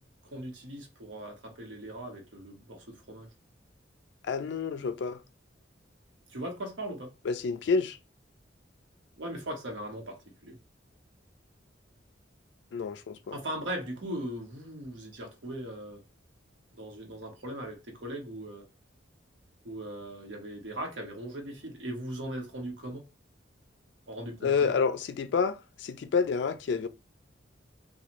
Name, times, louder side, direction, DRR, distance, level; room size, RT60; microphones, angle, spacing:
voice 1, 0.3-3.3 6.3-7.1 9.2-10.6 13.3-16.0 16.7-18.7 19.6-23.0 24.1-24.7, right 1 dB, 85° right, 1.0 m, -39 dB
voice 2, 4.2-5.2 7.2-8.0 12.7-13.4 24.4-26.9, left 5 dB, 65° left, 0.3 m, -29 dB
2.9 x 2.3 x 2.5 m
head